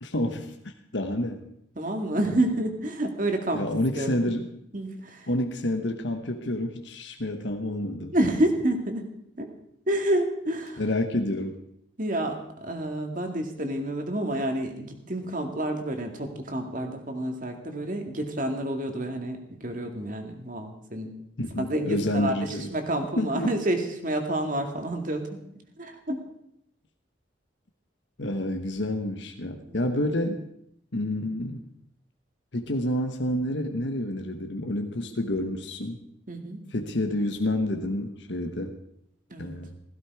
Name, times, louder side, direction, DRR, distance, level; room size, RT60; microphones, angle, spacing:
voice 1, 0.0-1.5 3.5-4.5 5.3-8.1 10.8-11.6 21.4-22.7 23.2-23.6 28.2-30.4 30.9-31.6 32.5-36.0 36.7-38.8 39.4-39.8, left 1 dB, 70° left, 5 dB, 1.2 m, -29 dB
voice 2, 1.8-3.7 3.9-4.3 4.7-5.3 8.1-9.1 9.4-9.5 9.9-10.8 12.0-21.1 21.6-25.4 25.8-26.2 29.7-30.0 36.3-36.6 39.3-39.5, right 1 dB, 45° right, 5 dB, 2.2 m, -29 dB
16.0 x 15.5 x 4.8 m, 0.74 s
head